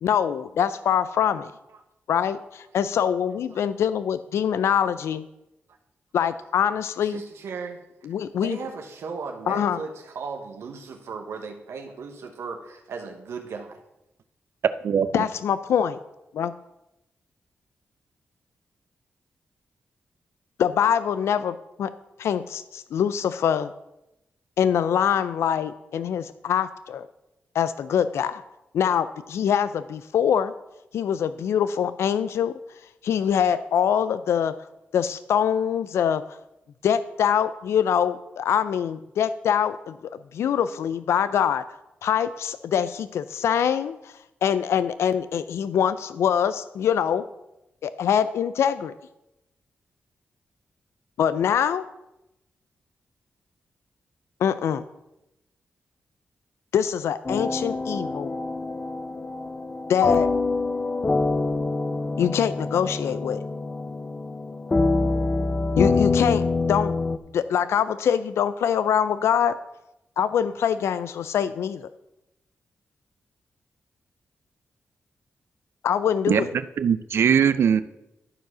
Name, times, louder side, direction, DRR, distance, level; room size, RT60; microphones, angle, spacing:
voice 1, 0.0-1.5 2.1-5.2 6.1-7.2 8.0-8.6 9.5-9.8 15.1-16.0 16.3-16.5 20.6-21.9 22.2-23.7 24.6-27.1 27.5-28.4 28.7-30.5 30.9-32.5 33.0-34.5 34.9-36.4 36.8-40.0 40.3-41.6 42.0-44.1 44.4-47.2 47.8-48.9 51.2-51.8 54.4-54.8 56.7-58.3 59.9-60.3 62.2-63.4 65.8-66.9 67.3-69.6 70.2-71.9 75.8-76.5, left 8 dB, 90° left, 14 dB, 0.4 m, -24 dB
voice 2, 7.0-7.8 8.4-13.8, right 5 dB, 85° right, 3 dB, 1.0 m, -36 dB
voice 3, 14.8-15.2 76.3-76.5 76.8-77.8, right 7 dB, 70° right, 13 dB, 0.5 m, -20 dB
sound 1, 57.2-67.2, left 3 dB, 30° left, 0.6 m, -25 dB
12.0 x 4.7 x 6.1 m, 0.91 s
cardioid pair, 85°, 4 cm